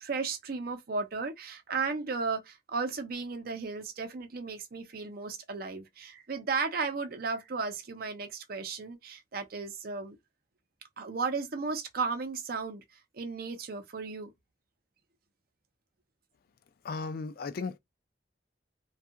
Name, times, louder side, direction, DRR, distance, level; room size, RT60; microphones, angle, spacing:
voice 1, 0.0-10.2 11.0-12.8 13.1-14.3, right 4 dB, 55° right, 0.6 m, -34 dB
voice 2, 16.8-17.8, left 4 dB, 55° left, 0.3 m, -35 dB
2.7 x 2.3 x 2.4 m
head